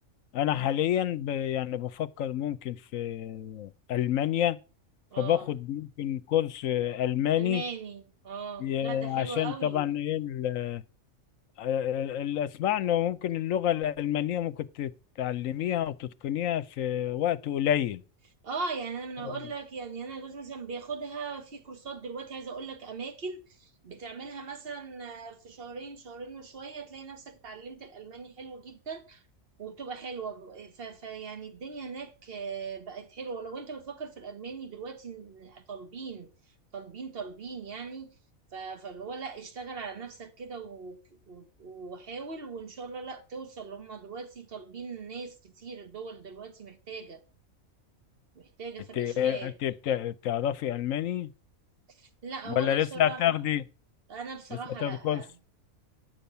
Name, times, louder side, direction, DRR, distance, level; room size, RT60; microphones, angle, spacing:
voice 1, 0.3-4.6 5.2-7.6 8.6-10.8 11.6-14.9 15.2-18.0 19.3-19.4 49.0-51.3 52.5-53.6 54.8-55.2, left 11 dB, 70° left, 1.0 m, -28 dB
voice 2, 5.1-5.5 7.4-9.9 18.4-29.2 29.6-36.3 36.7-38.2 38.5-47.2 48.4-49.6 51.9-53.4 54.1-55.4, right 5 dB, 45° right, 1.6 m, -40 dB
10.5 x 7.0 x 5.6 m
omnidirectional pair, 1.5 m